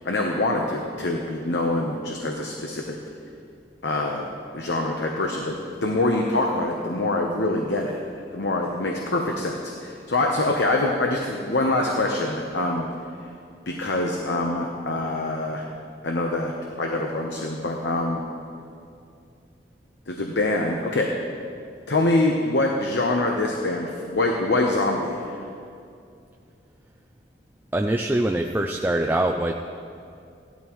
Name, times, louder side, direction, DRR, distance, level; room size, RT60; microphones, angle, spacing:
voice 1, 0.0-3.0 3.8-4.3 4.5-8.0 8.3-12.9 13.7-15.6 16.0-16.5 16.8-18.2 20.1-21.1 21.9-25.2, left 2 dB, 75° left, 1 dB, 0.9 m, -24 dB
voice 2, 27.7-29.6, right 1 dB, 10° right, 2 dB, 0.3 m, -23 dB
16.5 x 12.5 x 3.1 m, 2.5 s
head